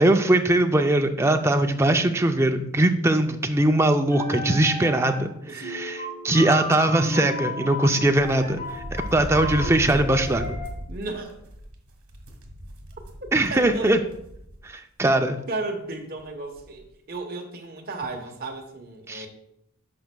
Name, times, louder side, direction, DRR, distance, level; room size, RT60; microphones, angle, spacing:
voice 1, 0.0-10.6 13.3-14.0 14.6-15.4 19.1-19.3, right 1 dB, 10° right, 6 dB, 0.3 m, -21 dB
sound 1, 4.0-5.4 5.6-10.7, equal, 35° left, 2.4 m, -34 dB
voice 2, 5.4-5.7 10.9-11.4 13.5-14.0 15.5-19.3, right 3 dB, 45° right, 3 dB, 0.9 m, -34 dB
sound 2, 7.9-14.6 15.0-15.1 16.2-16.3 16.5-16.8, equal, 70° right, 1.4 m, -37 dB
10.5 x 5.3 x 2.2 m, 0.78 s
head